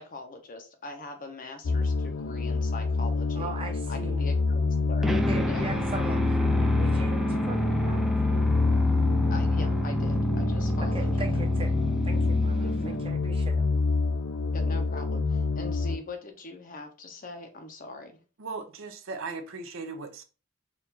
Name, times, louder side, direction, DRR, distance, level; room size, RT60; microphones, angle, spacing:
voice 1, 0.0-3.5 3.9-5.1 5.4-5.7 9.3-11.3 12.6-13.0 14.5-18.2, left 2 dB, 40° left, 0.6 m, -41 dB
sound 1, 1.6-16.0, left 3 dB, 90° left, 0.5 m, -27 dB
voice 2, 3.3-4.2 5.3-8.0 10.9-13.5, right 3 dB, 25° right, 0.9 m, -40 dB
sound 2, 5.0-13.3, equal, ahead, 0.3 m, -29 dB
voice 3, 18.4-20.2, right 4 dB, 65° right, 0.6 m, -37 dB
4.4 x 2.4 x 3.8 m
head